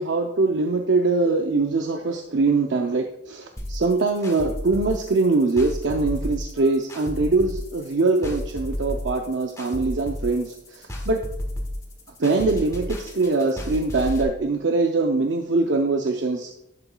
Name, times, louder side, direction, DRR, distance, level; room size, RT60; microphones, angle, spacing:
voice 1, 0.0-11.2 12.2-16.5, right 3 dB, 75° right, 4 dB, 0.6 m, -23 dB
sound 1, 3.6-14.2, left 1 dB, 15° left, 1.5 m, -32 dB
11.0 x 7.0 x 2.3 m, 0.83 s
head